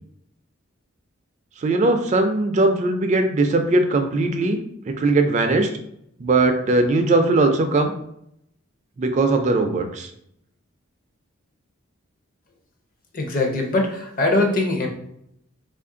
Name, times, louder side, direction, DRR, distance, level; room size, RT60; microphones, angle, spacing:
voice 1, 1.6-4.6 4.9-5.7 6.2-7.9 9.0-10.1, right 2 dB, 35° right, 5 dB, 0.3 m, -19 dB
voice 2, 13.1-14.9, left 2 dB, 45° left, 2 dB, 0.6 m, -21 dB
3.0 x 2.5 x 3.7 m, 0.75 s
head